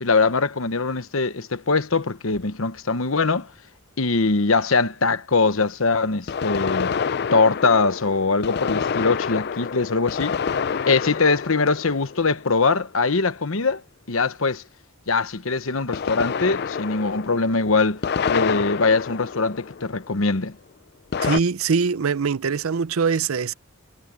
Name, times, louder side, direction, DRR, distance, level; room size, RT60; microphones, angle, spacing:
voice 1, 0.0-3.5 4.0-6.9 7.3-10.4 10.9-13.8 14.1-14.6 15.1-18.0 18.3-20.6, left 4 dB, 75° left, 1.1 m, -22 dB
sound 1, 2.3-2.4 6.3-12.8 15.9-20.2 21.1-21.4, left 6 dB, 50° left, 0.4 m, -28 dB
voice 2, 21.2-23.5, right 5 dB, 85° right, 0.6 m, -22 dB
head